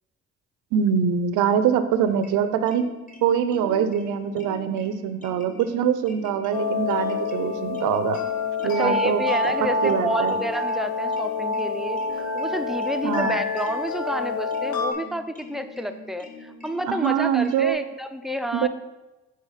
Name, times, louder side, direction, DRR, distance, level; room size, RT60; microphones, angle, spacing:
voice 1, 0.7-2.9 3.2-8.2 8.6-9.2 9.8-10.4 13.0-13.4 16.9-17.8 18.5-18.7, right 8 dB, 90° right, 10 dB, 0.5 m, -23 dB
sound 1, 2.0-17.7, left 2 dB, 25° left, 1.2 m, -44 dB
sound 2, 6.5-14.9, left 3 dB, 70° left, 0.8 m, -27 dB
voice 2, 8.8-18.7, equal, ahead, 8 dB, 0.4 m, -30 dB
5.6 x 4.3 x 4.8 m, 1.1 s
cardioid pair, 90°, 30 cm